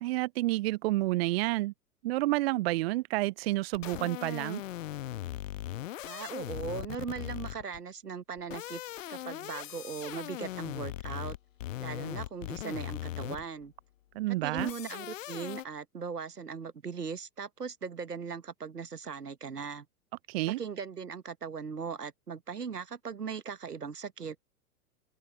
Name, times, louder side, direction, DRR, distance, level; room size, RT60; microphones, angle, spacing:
voice 1, 0.0-1.7 2.0-4.6 14.1-14.7 20.3-20.6, right 18 dB, 40° right, 0.7 m, -29 dB
sound 1, 3.7-7.8 8.4-13.6 14.6-15.6, left 13 dB, 55° left, 1.0 m, -39 dB
voice 2, 6.0-8.8 9.1-11.4 11.8-13.7 14.3-19.8 20.5-24.4, right 6 dB, 80° right, 1.3 m, -39 dB
open air
figure-of-eight pair, 100°, 46 cm